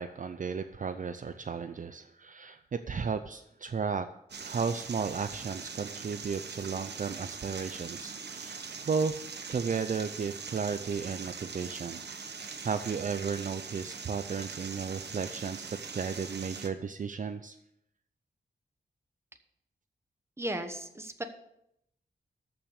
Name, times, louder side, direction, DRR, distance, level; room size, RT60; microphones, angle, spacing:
voice 1, 0.0-4.1 4.4-9.2 9.5-12.0 12.6-17.6, right 5 dB, 50° right, 10 dB, 0.5 m, -34 dB
sound 1, 4.3-16.7, right 5 dB, 75° right, 1.1 m, -42 dB
voice 2, 20.4-21.2, right 1 dB, 15° right, 7 dB, 1.1 m, -35 dB
13.5 x 6.0 x 6.5 m, 0.77 s
wide cardioid pair, 150°, 18 cm